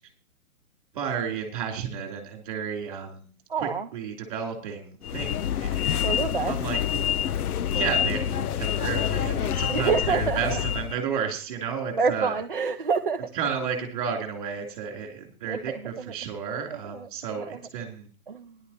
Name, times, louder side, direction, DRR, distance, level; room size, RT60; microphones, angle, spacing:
voice 1, 0.9-3.3 3.5-6.2 6.4-6.8 7.1-7.2 7.7-12.4 13.3-18.1, right 7 dB, 25° right, 2 dB, 3.1 m, -32 dB
voice 2, 3.5-3.9 6.0-6.5 9.7-10.6 12.0-13.2 15.5-16.1 16.7-17.1 17.5-17.6 18.3-18.6, right 5 dB, 40° right, 4 dB, 0.5 m, -27 dB
sound 1, 5.0-11.0, left 10 dB, 80° left, 0.6 m, -27 dB
17.0 x 11.0 x 2.9 m, 0.41 s
hypercardioid pair, 175°, 45 cm